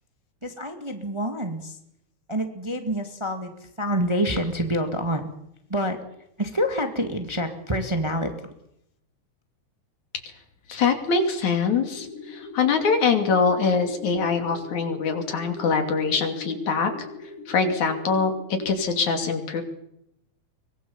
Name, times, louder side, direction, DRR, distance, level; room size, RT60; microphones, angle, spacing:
voice 1, 0.4-1.8 2.3-5.3 5.7-6.0 6.4-8.5, equal, 10° right, 5 dB, 1.6 m, -27 dB
voice 2, 10.7-16.9 17.5-19.6, left 5 dB, 75° left, 6 dB, 4.1 m, -23 dB
sound 1, 11.8-18.8, left 4 dB, 50° left, 4.7 m, -40 dB
24.0 x 19.5 x 7.2 m, 0.78 s
omnidirectional pair, 3.4 m